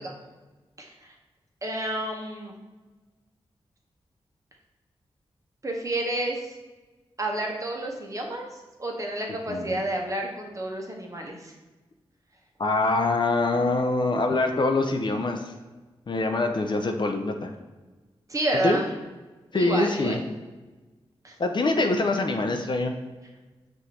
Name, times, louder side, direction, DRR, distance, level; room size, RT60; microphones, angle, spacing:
voice 1, 0.8-1.1 1.6-2.6 5.6-6.5 7.2-11.5 18.3-19.0 19.5-20.2 21.2-21.3, right 1 dB, 30° right, 0 dB, 0.9 m, -30 dB
voice 2, 9.5-9.8 12.6-15.5 16.1-17.5 18.6-18.8 19.5-20.2 21.4-22.9, left 2 dB, 45° left, 5 dB, 0.5 m, -24 dB
5.5 x 2.6 x 2.8 m, 1.2 s
cardioid pair, 50°, 11 cm